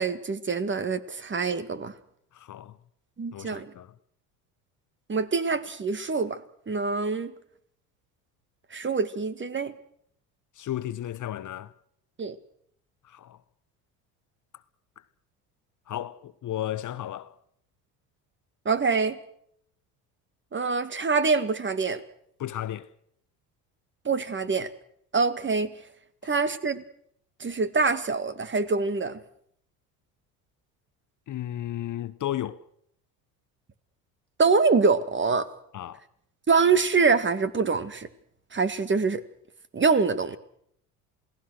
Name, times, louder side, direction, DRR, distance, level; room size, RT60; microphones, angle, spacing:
voice 1, 0.0-1.9 3.2-3.7 5.1-6.4 6.7-7.3 8.7-9.7 12.2-12.4 18.7-19.2 20.5-22.0 24.1-24.7 25.1-25.7 26.2-26.8 27.4-29.2 34.4-35.5 36.5-38.1 38.5-39.2 39.7-40.4, right 4 dB, 25° right, 1.9 m, -25 dB
voice 2, 2.3-2.8 3.3-3.9 10.5-11.7 13.0-13.4 15.0-15.1 15.9-17.4 22.4-22.9 31.3-32.6 35.7-36.0, left 12 dB, 40° left, 1.1 m, -34 dB
28.0 x 18.0 x 6.4 m
hypercardioid pair, 70°, 45 cm